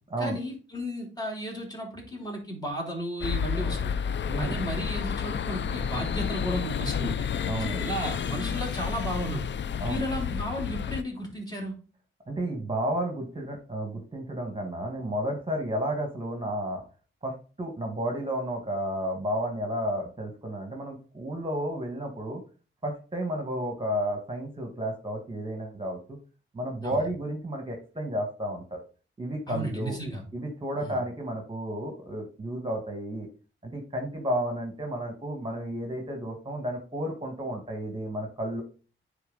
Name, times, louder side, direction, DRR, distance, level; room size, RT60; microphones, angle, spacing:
voice 1, 0.2-4.0 4.4-7.3 7.8-9.4 9.9-11.7 26.8-27.0 29.5-30.2 30.8-31.0, equal, 20° left, -1 dB, 3.3 m, -34 dB
sound 1, 3.2-11.0, left 7 dB, 60° left, 0.4 m, -30 dB
voice 2, 4.3-4.6 7.5-7.9 9.8-10.0 12.3-16.8 17.2-22.4 22.8-26.2 26.5-28.8 29.2-30.0 30.3-33.3 33.6-38.6, right 1 dB, 25° right, 2 dB, 1.6 m, -32 dB
9.8 x 3.8 x 3.9 m, 0.36 s
wide cardioid pair, 85°, 21 cm